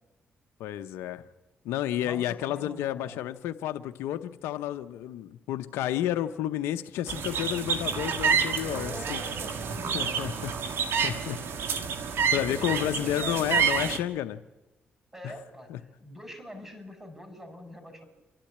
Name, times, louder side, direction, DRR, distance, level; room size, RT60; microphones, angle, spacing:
voice 1, 0.6-1.2 1.6-9.2 9.9-10.5 11.0-11.4 12.3-14.4 15.2-15.3 15.7-15.8, left 12 dB, 90° left, 9 dB, 0.7 m, -31 dB
voice 2, 2.0-3.2 8.6-10.3 12.1-14.0 15.1-18.1, equal, 10° right, 7 dB, 5.5 m, -44 dB
sound 1, 7.1-14.0, right 6 dB, 70° right, 1.7 m, -28 dB
27.5 x 12.0 x 8.7 m, 1.0 s
supercardioid pair, 65°, 4 cm